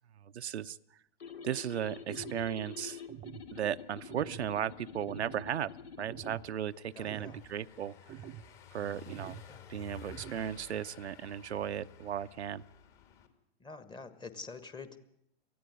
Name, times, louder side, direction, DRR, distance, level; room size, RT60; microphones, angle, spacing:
voice 1, 0.3-0.8 1.4-3.0 3.5-5.7 6.0-7.9 8.7-9.4 9.7-12.6, right 9 dB, 80° right, 11 dB, 0.7 m, -36 dB
sound 1, 1.2-6.4, left 6 dB, 70° left, 2.1 m, -47 dB
sound 2, 2.1-2.5 3.1-3.5 4.1-4.5 5.1-5.5 6.1-6.5 7.1-7.5 8.1-8.5 9.1-9.5 10.1-10.5, right 11 dB, 20° right, 0.7 m, -46 dB
Car passing by / Engine, 6.6-13.3, left 9 dB, 40° left, 2.8 m, -54 dB
voice 2, 6.9-7.4 9.5-9.7 13.6-15.0, left 4 dB, 15° left, 12 dB, 1.4 m, -46 dB
19.0 x 14.5 x 9.7 m, 0.75 s
hypercardioid pair, 110°, 33 cm